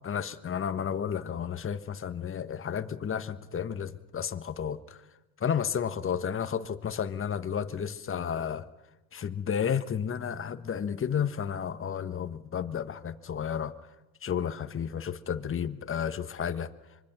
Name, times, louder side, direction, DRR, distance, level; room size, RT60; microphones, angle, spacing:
voice 1, 0.0-5.0 5.4-8.7 9.1-13.7 14.2-16.7, left 8 dB, 25° left, 11 dB, 1.5 m, -32 dB
25.0 x 23.5 x 6.2 m, 1.1 s
hypercardioid pair, 85°, 48 cm